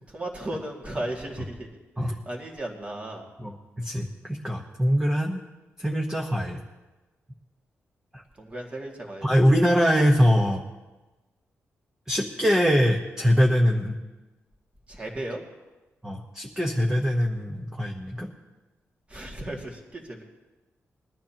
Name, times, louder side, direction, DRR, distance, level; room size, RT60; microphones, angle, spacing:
voice 1, 0.1-1.7 2.0-3.2 8.4-9.3 14.9-15.4 19.1-20.2, right 1 dB, 25° right, 0 dB, 2.3 m, -35 dB
voice 2, 3.8-5.4 5.8-6.6 8.1-8.2 9.2-10.6 12.1-14.0 16.0-18.3, equal, 10° right, 0 dB, 1.1 m, -23 dB
21.0 x 12.5 x 3.0 m, 1.1 s
wide cardioid pair, 140°, 5 cm